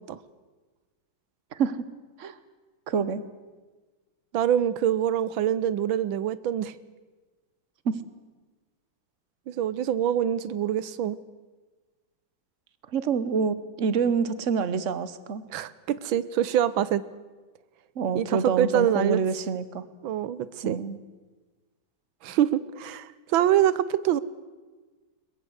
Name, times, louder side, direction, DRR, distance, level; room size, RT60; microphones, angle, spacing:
voice 1, 1.5-1.8 2.2-2.4 2.9-3.2 7.8-8.0 12.9-15.4 18.0-19.8 20.6-21.0, right 5 dB, 45° right, 15 dB, 1.3 m, -27 dB
voice 2, 4.3-6.8 9.5-11.2 15.5-17.0 18.2-19.2 20.0-20.8 22.2-24.2, right 10 dB, 85° right, 17 dB, 1.7 m, -25 dB
22.0 x 21.5 x 8.0 m, 1.3 s
omnidirectional pair, 2.1 m